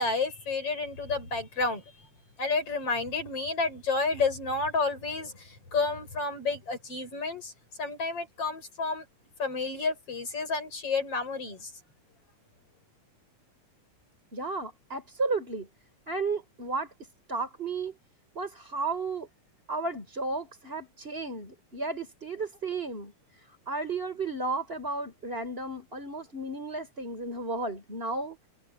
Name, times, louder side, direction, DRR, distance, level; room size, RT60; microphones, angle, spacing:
voice 1, 0.0-1.8 2.4-7.5 7.8-9.0 9.4-11.7, left 3 dB, 50° left, 7.1 m, -30 dB
voice 2, 14.3-15.7 16.1-16.9 17.3-17.9 18.3-19.3 19.7-28.4, right 3 dB, 20° right, 4.6 m, -33 dB
omnidirectional pair, 3.5 m